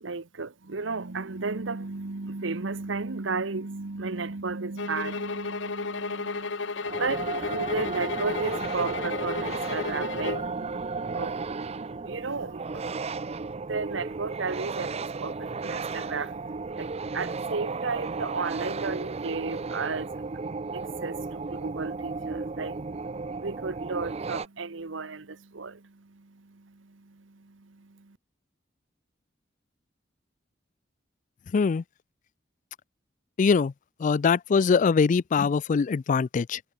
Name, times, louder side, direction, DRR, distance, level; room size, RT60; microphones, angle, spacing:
voice 1, 0.0-28.2, right 4 dB, 85° right, 1.1 m, -34 dB
sound 1, 4.8-10.5, left 4 dB, 70° left, 1.1 m, -33 dB
sound 2, 6.8-24.5, right 4 dB, 35° right, 0.6 m, -34 dB
voice 2, 31.5-31.8 33.4-33.7 34.0-36.6, left 5 dB, 45° left, 0.3 m, -22 dB
head